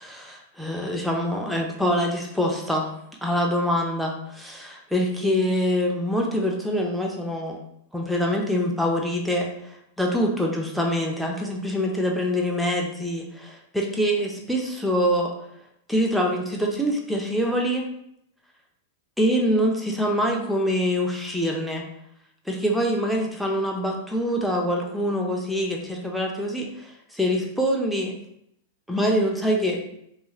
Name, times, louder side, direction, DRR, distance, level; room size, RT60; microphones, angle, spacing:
voice 1, 0.0-2.9 3.2-7.6 7.9-15.3 15.9-17.8 19.2-21.8 22.5-28.1 28.9-29.8, equal, ahead, -1 dB, 0.4 m, -25 dB
3.0 x 2.4 x 2.3 m, 0.75 s
hypercardioid pair, 130°, 0 cm